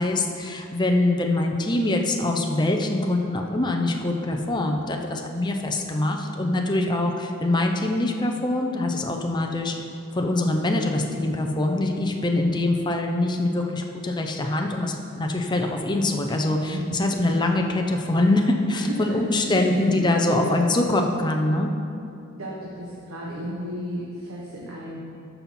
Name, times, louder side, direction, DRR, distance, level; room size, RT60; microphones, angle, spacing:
voice 1, 0.0-7.1 7.4-9.7 10.1-21.7, left 2 dB, 20° left, 2 dB, 0.7 m, -24 dB
voice 2, 6.5-7.0 16.7-17.2 18.7-20.8 22.4-25.0, equal, 90° right, -5 dB, 1.4 m, -33 dB
14.0 x 5.6 x 4.3 m, 2.6 s
head